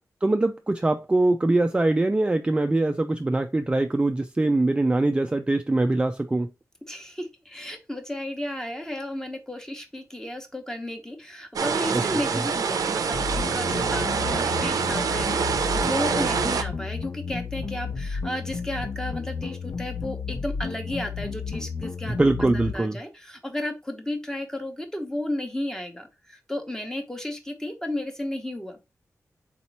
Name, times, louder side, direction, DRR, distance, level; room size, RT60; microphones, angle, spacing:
voice 1, 0.2-6.5 11.9-12.0 12.3-12.4 22.1-23.0, right 2 dB, 15° right, 0.3 m, -23 dB
voice 2, 6.9-22.2 22.5-28.8, left 1 dB, 10° left, 1.0 m, -33 dB
sound 1, 11.6-16.6, right 6 dB, 85° right, 0.5 m, -26 dB
sound 2, 13.1-22.7, left 5 dB, 50° left, 0.4 m, -32 dB
4.0 x 2.9 x 4.1 m
wide cardioid pair, 85°, 6 cm